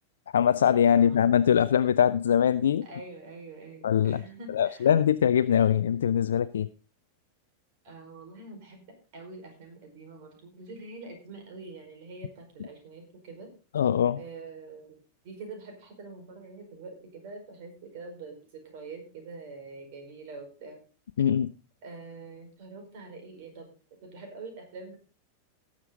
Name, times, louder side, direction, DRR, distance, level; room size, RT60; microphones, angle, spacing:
voice 1, 0.3-2.9 3.8-4.2 4.5-6.7 13.7-14.2 21.2-21.5, left 9 dB, 65° left, 0.5 m, -22 dB
voice 2, 0.9-1.3 2.8-4.9 7.8-8.8 9.1-13.5 14.2-15.0 15.2-20.8 21.8-23.7 24.0-25.0, right 3 dB, 50° right, 4.7 m, -45 dB
18.0 x 7.3 x 3.9 m
figure-of-eight pair, 90°, 0 cm